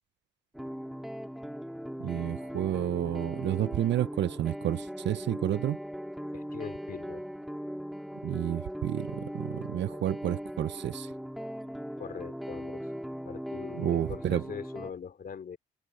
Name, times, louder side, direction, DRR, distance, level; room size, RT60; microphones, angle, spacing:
sound 1, 0.5-14.9, equal, ahead, 2.6 m, -39 dB
voice 1, 2.0-5.8 8.2-11.1 13.8-14.4, right 12 dB, 65° right, 0.7 m, -30 dB
voice 2, 6.3-7.3 12.0-12.8 13.2-15.6, left 7 dB, 50° left, 3.2 m, -42 dB
cardioid pair, 90°, 20 cm